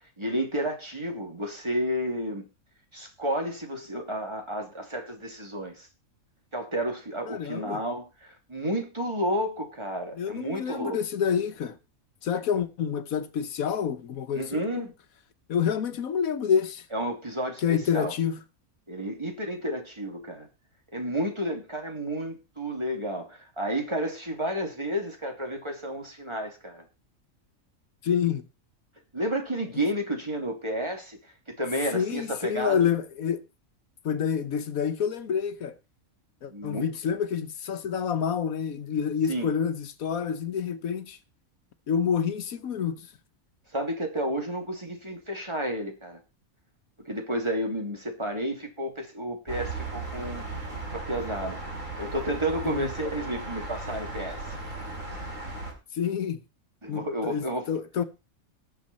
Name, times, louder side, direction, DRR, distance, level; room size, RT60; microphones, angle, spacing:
voice 1, 0.0-2.4 2.9-5.9 6.5-11.0 14.3-14.9 16.9-18.1 18.9-20.5 20.9-26.8 29.1-32.9 36.5-36.9 39.3-39.5 43.7-46.2 47.0-50.4 50.9-54.6 56.8-57.7, right 1 dB, 20° right, 2.8 m, -31 dB
voice 2, 7.3-7.8 10.2-11.8 12.2-14.5 14.8-14.9 15.5-16.9 17.6-18.4 28.0-28.5 29.7-29.8 31.9-33.4 34.0-35.7 36.4-41.2 41.9-43.0 52.6-52.9 55.9-56.4 56.9-58.0, left 7 dB, 75° left, 1.4 m, -28 dB
sound 1, 49.5-55.7, right 2 dB, 65° right, 5.1 m, -36 dB
19.0 x 7.1 x 4.2 m
omnidirectional pair, 1.5 m